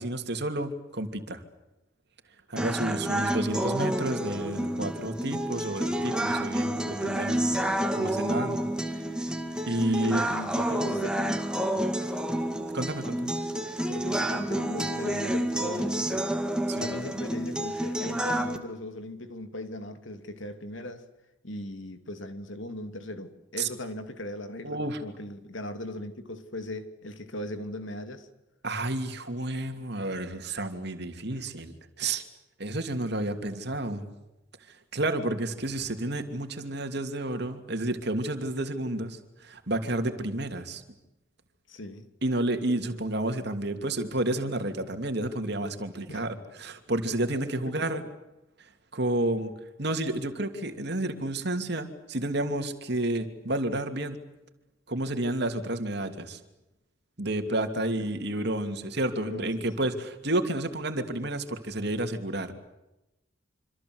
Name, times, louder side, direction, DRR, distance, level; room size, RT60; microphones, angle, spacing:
voice 1, 0.0-1.4 2.5-8.6 8.9-9.0 9.7-10.2 12.7-13.3 16.7-16.9 23.6-23.7 24.6-25.0 28.6-32.2 32.6-34.1 34.9-40.8 42.2-48.0 48.9-49.5 49.8-54.2 54.9-56.4 57.2-62.5, right 1 dB, 55° right, 2.8 m, -30 dB
sound 1, 2.6-18.6, right 1 dB, 5° right, 2.1 m, -29 dB
voice 2, 2.9-3.3 9.8-11.4 11.7-12.0 13.9-21.0 21.4-28.3 31.4-31.5 41.7-42.1 46.1-46.2 47.6-48.1 58.0-58.1 59.1-59.9, left 1 dB, 75° left, 2.8 m, -39 dB
27.0 x 26.0 x 8.0 m
head